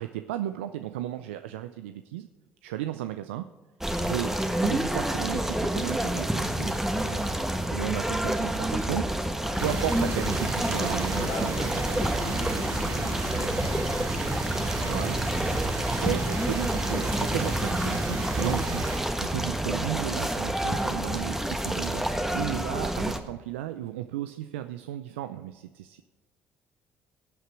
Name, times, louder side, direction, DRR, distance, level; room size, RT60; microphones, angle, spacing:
voice 1, 0.0-2.3 2.6-3.5 4.0-7.3 7.7-9.1 9.6-11.5 12.2-12.3 14.8-15.2 16.0-26.0, right 13 dB, 85° right, 10 dB, 0.4 m, -34 dB
sound 1, 3.8-23.2, right 1 dB, 5° right, 1.4 m, -28 dB
voice 2, 9.3-9.6 11.2-15.0, left 3 dB, 75° left, 0 dB, 3.1 m, -41 dB
sound 2, 9.6-19.0, right 3 dB, 55° right, 4.5 m, -33 dB
15.5 x 8.4 x 4.6 m, 1.3 s
hypercardioid pair, 55°, 6 cm